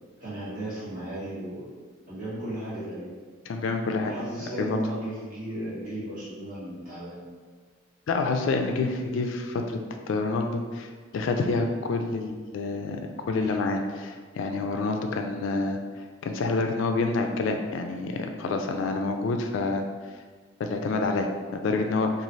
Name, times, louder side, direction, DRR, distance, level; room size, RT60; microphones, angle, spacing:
voice 1, 0.2-1.7 2.1-3.1 4.0-7.2 13.4-13.5, right 1 dB, 45° right, -12 dB, 1.5 m, -35 dB
voice 2, 3.5-4.1 4.6-4.8 8.1-9.8 10.1-15.8 16.2-19.8 20.6-22.2, left 3 dB, 70° left, 4 dB, 0.3 m, -28 dB
3.1 x 2.4 x 2.6 m, 1.5 s
head